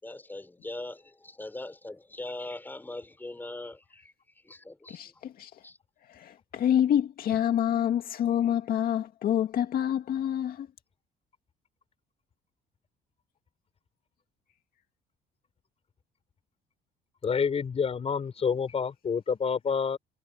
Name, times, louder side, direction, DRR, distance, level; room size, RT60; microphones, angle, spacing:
voice 1, 0.0-4.0 4.5-5.0 5.6-5.8, left 2 dB, 10° left, 6.0 m, -40 dB
voice 2, 4.9-5.5 6.1-10.7, left 10 dB, 60° left, 2.2 m, -27 dB
voice 3, 17.2-20.0, left 6 dB, 35° left, 4.5 m, -28 dB
cardioid pair, 110°, 17 cm